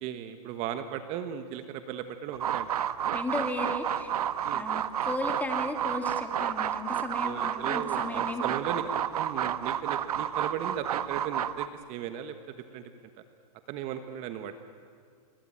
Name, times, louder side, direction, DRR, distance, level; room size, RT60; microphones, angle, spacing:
voice 1, 0.0-2.7 4.4-4.7 7.2-12.9 13.7-14.5, right 9 dB, 35° right, 9 dB, 1.5 m, -37 dB
sound 1, 2.3-11.7, right 10 dB, 75° right, 1.3 m, -30 dB
voice 2, 3.1-4.1 4.5-8.4, left 2 dB, 10° left, 4 dB, 2.7 m, -35 dB
27.5 x 23.5 x 8.9 m, 2.2 s
hypercardioid pair, 140°, 20 cm